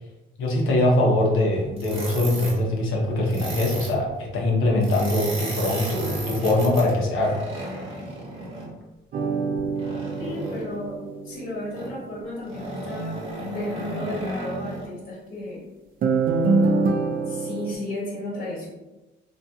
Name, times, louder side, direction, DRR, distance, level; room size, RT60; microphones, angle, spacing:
voice 1, 0.4-7.4, left 1 dB, 90° left, -2 dB, 0.8 m, -22 dB
sound 1, 1.8-2.6 3.3-4.0 4.8-8.7 9.8-10.7 11.7-12.0 12.4-14.9, right 1 dB, 30° right, 1.1 m, -34 dB
sound 2, 9.1-11.7 16.0-17.7, right 3 dB, 45° right, 0.4 m, -24 dB
voice 2, 10.2-11.0 11.2-15.6 17.3-18.7, left 1 dB, 45° left, -5 dB, 1.3 m, -33 dB
2.7 x 2.4 x 2.3 m, 1.0 s
cardioid pair, 90°, 20 cm